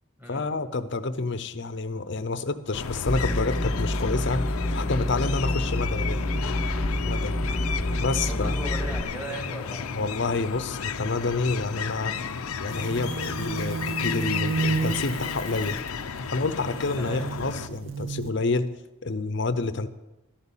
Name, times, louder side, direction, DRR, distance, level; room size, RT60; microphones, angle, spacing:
voice 1, 0.3-4.5 4.7-6.2 7.0-7.4 8.0-8.5 9.9-12.1 12.6-15.8 16.3-18.7 19.0-19.9, left 3 dB, 55° left, 13 dB, 0.7 m, -28 dB
sound 1, 2.7-17.7, left 6 dB, 90° left, 0.6 m, -33 dB
sound 2, 3.1-9.0, left 1 dB, 10° left, 1.0 m, -28 dB
voice 2, 8.2-9.9 17.0-17.2, right 1 dB, 10° right, 0 dB, 1.7 m, -38 dB
sound 3, 12.7-18.3, right 4 dB, 60° right, 0.7 m, -32 dB
12.5 x 8.2 x 7.3 m, 1.0 s
head